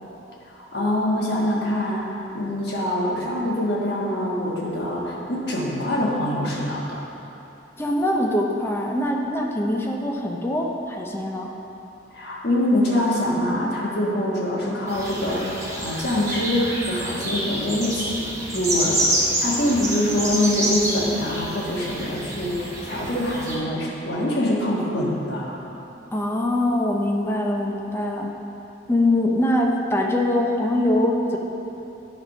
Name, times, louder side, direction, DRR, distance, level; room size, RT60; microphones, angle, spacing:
voice 1, 0.5-2.1 2.3-7.0 12.1-18.2 18.5-19.1 19.4-25.6, left 1 dB, 60° left, -5 dB, 1.5 m, -24 dB
voice 2, 7.8-11.5 26.1-28.3 28.9-31.4, left 1 dB, 15° left, 0 dB, 0.6 m, -23 dB
sound 1, 14.9-23.6, right 1 dB, 15° right, 1.0 m, -28 dB
9.9 x 3.5 x 5.3 m, 3.0 s
head